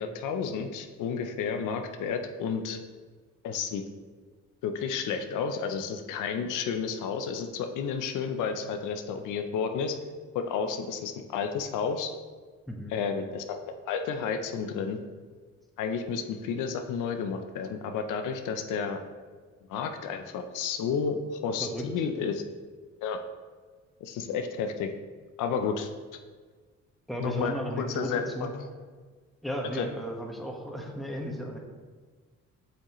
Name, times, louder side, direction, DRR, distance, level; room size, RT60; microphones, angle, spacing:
voice 1, 0.0-2.8 3.4-3.8 4.6-10.0 10.3-12.1 12.9-13.6 13.9-15.0 15.8-19.0 19.7-22.4 23.0-23.2 24.0-24.9 25.4-25.9 27.2-28.7 29.7-29.9, left 6 dB, 90° left, 6 dB, 0.6 m, -31 dB
voice 2, 12.7-13.0 21.6-21.8 27.1-28.1 28.3-28.5 29.4-31.6, equal, ahead, -1 dB, 1.4 m, -34 dB
7.8 x 6.5 x 3.1 m, 1.5 s
cardioid pair, 90°, 30 cm